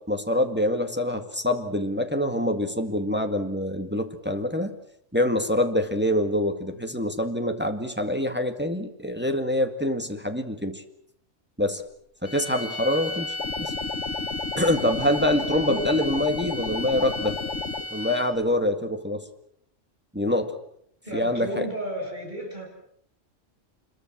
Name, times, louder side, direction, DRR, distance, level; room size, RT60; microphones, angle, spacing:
voice 1, 0.1-4.8 5.1-10.8 11.6-11.8 12.2-13.7 14.6-17.4 17.9-19.2 20.1-20.6 21.1-21.7, left 1 dB, 10° right, 5 dB, 2.0 m, -25 dB
sound 1, 12.2-18.5, left 1 dB, 50° left, 6.6 m, -35 dB
sound 2, 13.4-17.9, left 4 dB, 70° left, 1.6 m, -33 dB
voice 2, 15.6-15.9 21.0-22.7, equal, 35° right, 0 dB, 8.0 m, -32 dB
26.5 x 22.0 x 7.5 m, 0.71 s
omnidirectional pair, 1.3 m